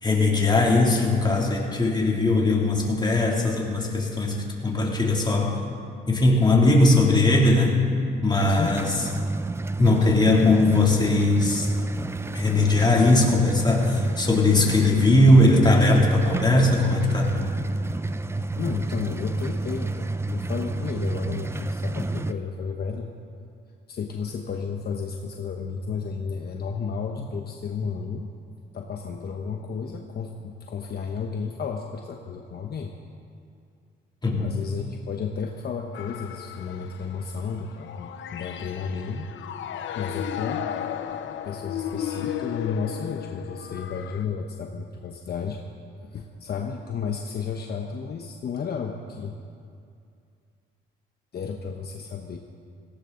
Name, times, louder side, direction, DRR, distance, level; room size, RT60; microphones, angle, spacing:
voice 1, 0.0-5.6 6.1-7.8 8.2-8.9 9.8-11.7 12.3-17.3 34.2-34.5, left 2 dB, 20° left, -1 dB, 2.9 m, -20 dB
sound 1, 8.4-22.3, right 2 dB, 15° right, 0.4 m, -30 dB
voice 2, 8.5-8.9 18.4-23.1 23.9-28.3 28.7-32.9 34.4-39.3 39.9-40.7 41.4-45.6 46.0-49.4 51.3-52.4, left 6 dB, 55° left, 2 dB, 1.1 m, -32 dB
sound 2, 35.9-44.2, left 10 dB, 75° left, 0.8 m, -34 dB
18.0 x 16.5 x 3.9 m, 2.4 s
cardioid pair, 90°, 20 cm